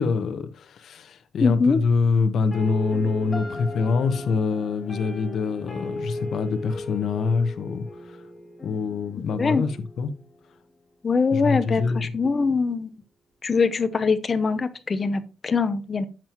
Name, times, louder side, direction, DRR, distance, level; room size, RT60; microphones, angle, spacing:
voice 1, 0.0-8.2 8.6-10.1 11.3-12.1, left 4 dB, 65° left, 1.0 m, -25 dB
voice 2, 1.4-1.8 9.4-9.6 11.0-12.9 13.4-16.0, left 4 dB, 35° left, 0.7 m, -23 dB
sound 1, 2.5-10.5, left 2 dB, 15° left, 4.0 m, -37 dB
10.5 x 7.5 x 3.0 m
cardioid pair, 135°, 0 cm